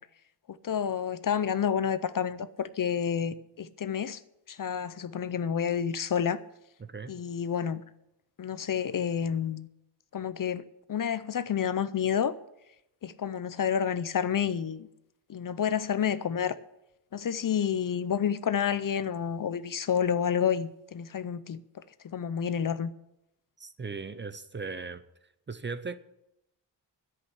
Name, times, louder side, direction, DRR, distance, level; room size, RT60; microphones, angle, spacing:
voice 1, 0.5-4.2 4.5-6.4 7.1-7.8 8.4-9.7 10.1-12.4 13.0-14.9 15.3-16.6 17.1-22.9, left 8 dB, 50° left, 0.6 m, -29 dB
voice 2, 6.8-7.2 23.6-25.0 25.5-26.0, right 4 dB, 25° right, 0.6 m, -38 dB
10.5 x 8.0 x 9.9 m
wide cardioid pair, 150°, 44 cm